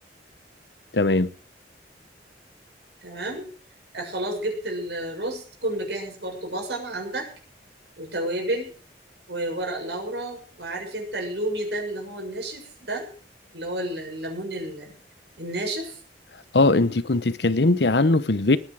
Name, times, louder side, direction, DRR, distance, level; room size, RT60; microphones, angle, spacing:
voice 1, 0.9-1.3 16.5-18.6, left 2 dB, 75° left, 0.9 m, -20 dB
voice 2, 3.0-3.5 3.9-7.3 8.0-8.7 9.3-13.1 13.5-14.9 15.4-16.0, right 1 dB, 70° right, 7.0 m, -31 dB
19.5 x 9.5 x 6.3 m
head